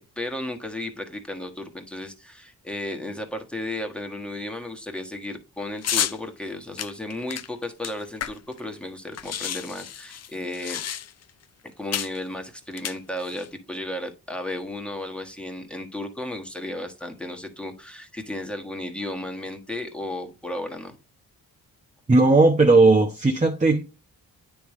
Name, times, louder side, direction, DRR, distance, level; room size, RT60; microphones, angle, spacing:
voice 1, 0.0-10.8 11.8-20.9, left 1 dB, 5° left, 1.4 m, -34 dB
sound 1, 5.8-6.2 6.8-8.6 8.9-9.0 9.1-11.3 11.9-12.2 12.7-13.5, left 9 dB, 40° left, 0.5 m, -30 dB
voice 2, 22.1-23.8, right 3 dB, 20° right, 0.9 m, -17 dB
9.3 x 3.4 x 3.1 m
cardioid pair, 60°, 39 cm